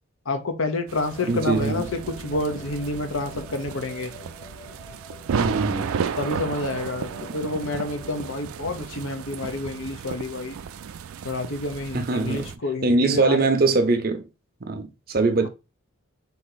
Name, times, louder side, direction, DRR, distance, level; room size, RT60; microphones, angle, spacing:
voice 1, 0.3-4.1 6.2-10.6 11.2-13.5 15.4-15.5, left 2 dB, 75° left, 0.8 m, -29 dB
sound 1, 0.9-8.3, left 2 dB, 45° left, 1.5 m, -46 dB
sound 2, 0.9-12.6, right 6 dB, 90° right, 0.4 m, -33 dB
voice 2, 1.3-1.9 5.4-5.9 11.9-12.5 12.8-14.3 14.7-15.5, right 3 dB, 45° right, 0.6 m, -22 dB
4.0 x 2.9 x 4.0 m
head